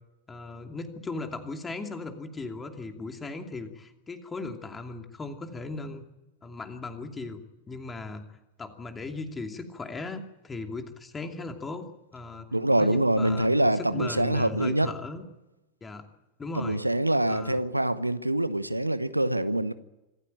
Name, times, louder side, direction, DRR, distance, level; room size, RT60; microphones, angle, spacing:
voice 1, 0.3-6.0 6.4-8.2 8.6-12.5 12.8-15.2 15.8-16.0 16.4-16.8 17.3-17.6, left 3 dB, 15° left, 2.7 m, -37 dB
voice 2, 12.5-14.9 16.5-19.7, right 1 dB, 85° right, 1.0 m, -25 dB
26.0 x 14.5 x 8.8 m
figure-of-eight pair, 90°, 0 cm